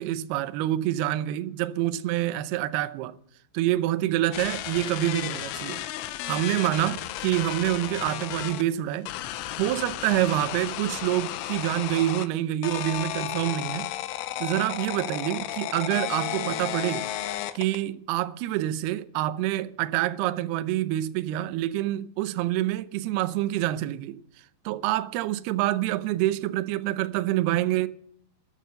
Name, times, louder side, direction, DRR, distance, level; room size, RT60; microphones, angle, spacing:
voice 1, 0.0-3.2 3.5-5.8 6.2-9.1 9.6-13.9 14.4-17.1 17.5-24.2 24.7-27.9, right 14 dB, 85° right, 2.2 m, -27 dB
sound 1, 4.3-8.6 9.1-12.3 12.6-17.8, left 14 dB, 85° left, 3.2 m, -33 dB
13.0 x 12.0 x 7.7 m
omnidirectional pair, 5.6 m